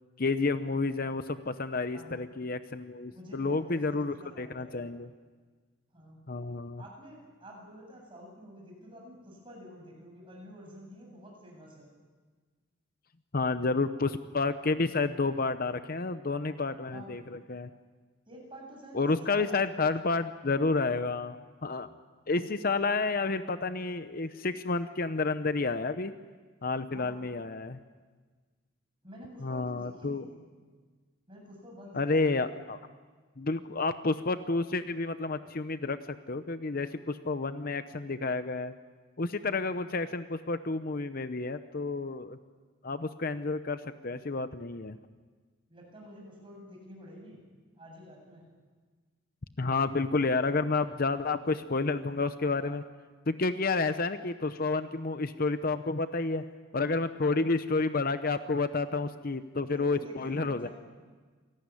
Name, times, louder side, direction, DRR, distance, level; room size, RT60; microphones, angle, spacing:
voice 1, 0.2-5.1 6.3-6.8 13.3-17.7 18.9-21.9 22.3-26.1 26.6-27.8 29.4-30.2 31.9-32.8 33.4-38.7 39.2-42.4 42.8-45.0 49.6-52.8 53.3-56.4 56.7-60.7, left 3 dB, 45° left, 11 dB, 0.8 m, -30 dB
voice 2, 1.9-2.3 3.1-4.9 5.9-6.2 6.8-11.9 16.9-17.2 18.3-19.8 26.9-27.3 29.0-30.4 31.3-32.3 39.6-39.9 45.7-47.4 47.8-48.5 57.2-57.4 59.6-60.7, equal, 25° right, 0 dB, 7.9 m, -49 dB
27.5 x 18.5 x 9.9 m, 1.4 s
head